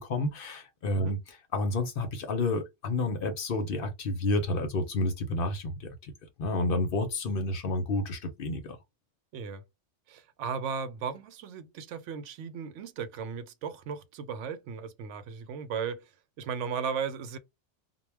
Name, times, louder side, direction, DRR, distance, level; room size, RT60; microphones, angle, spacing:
voice 1, 0.0-6.1 6.4-8.8, left 2 dB, 60° left, 0.8 m, -30 dB
voice 2, 9.3-9.6 10.1-16.1 16.4-17.4, right 6 dB, 90° right, 0.9 m, -36 dB
2.2 x 2.2 x 3.2 m
omnidirectional pair, 1.2 m